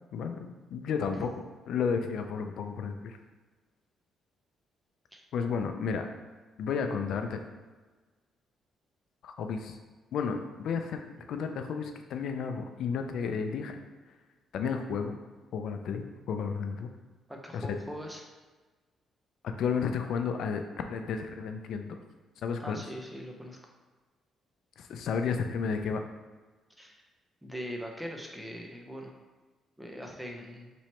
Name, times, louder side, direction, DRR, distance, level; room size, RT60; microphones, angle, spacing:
voice 1, 0.1-1.3 1.7-3.2 5.3-6.1 6.6-7.4 9.2-9.8 10.1-13.8 14.5-15.2 15.5-16.9 17.5-17.8 19.4-22.0 22.4-22.8 24.8-26.0, left 6 dB, 75° left, 6 dB, 0.4 m, -32 dB
voice 2, 17.3-18.2 22.6-23.7 26.8-27.0 27.4-29.1 29.8-30.7, equal, 5° right, 0 dB, 0.7 m, -41 dB
3.0 x 2.8 x 4.3 m, 1.3 s
cardioid pair, 90°, 0 cm